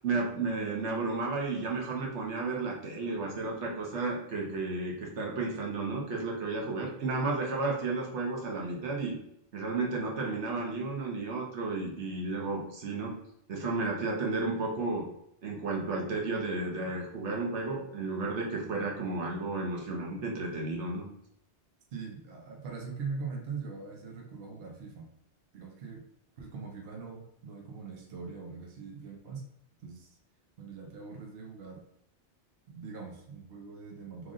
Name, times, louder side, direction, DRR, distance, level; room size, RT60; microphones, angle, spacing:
voice 1, 0.0-9.2 9.5-13.1 13.5-15.0 15.4-21.0, right 3 dB, 85° right, -1 dB, 1.2 m, -33 dB
voice 2, 21.9-25.1 25.5-26.0 26.4-29.5 29.8-30.2 30.6-31.8 32.7-34.3, right 5 dB, 65° right, 0 dB, 0.9 m, -42 dB
3.2 x 2.5 x 3.6 m, 0.72 s
omnidirectional pair, 1.2 m